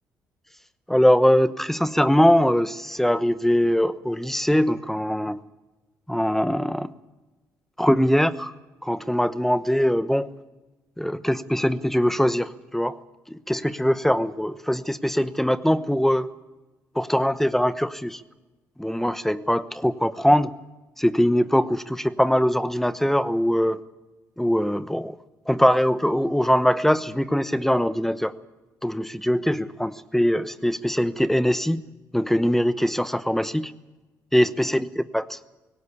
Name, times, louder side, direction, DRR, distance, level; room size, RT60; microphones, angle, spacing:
voice 1, 0.9-5.4 6.1-6.9 7.8-8.5 8.8-10.3 11.0-13.0 13.3-16.3 16.9-18.2 18.8-20.5 21.0-23.8 24.4-25.2 25.5-28.3 28.8-31.8 32.1-33.7 34.3-35.4, equal, 5° left, 14 dB, 1.0 m, -22 dB
18.0 x 17.5 x 8.5 m, 1.1 s
supercardioid pair, 60°, 7 cm